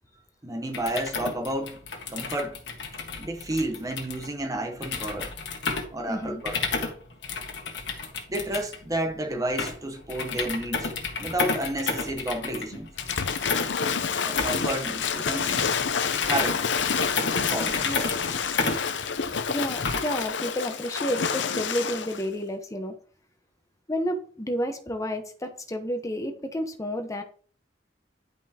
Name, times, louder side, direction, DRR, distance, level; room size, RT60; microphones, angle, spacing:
voice 1, 0.4-1.8 2.1-2.6 3.2-5.3 5.9-6.6 8.3-10.9 11.2-12.9 13.9-15.6 16.2-16.7 17.5-17.9, right 1 dB, 20° right, 1.0 m, -31 dB
sound 1, 0.6-20.3, left 4 dB, 70° left, 1.6 m, -32 dB
voice 2, 6.1-6.4 17.8-18.6 19.5-22.9 23.9-27.2, equal, 20° left, 1.1 m, -31 dB
Waves surf / Splash splatter, 13.0-22.2, left 6 dB, 85° left, 0.7 m, -28 dB
10.5 x 5.4 x 2.9 m
head